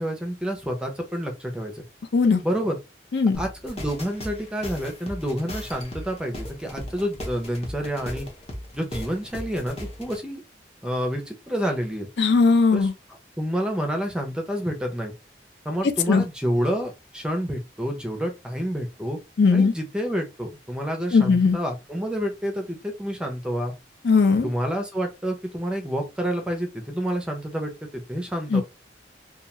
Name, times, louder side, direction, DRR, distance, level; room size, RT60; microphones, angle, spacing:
voice 1, 0.0-1.8 2.4-2.8 3.4-8.3 8.7-10.4 10.8-12.1 12.7-12.9 13.4-15.1 15.6-19.2 19.5-23.7 24.4-28.6, equal, 5° right, 0.5 m, -28 dB
sound 1, 3.3-10.2, equal, 35° left, 0.7 m, -37 dB
voice 2, 12.2-12.9 16.1-16.2 19.4-19.7 21.1-21.6 24.0-24.5 28.5-28.6, left 4 dB, 65° left, 0.4 m, -18 dB
2.3 x 2.2 x 2.8 m
head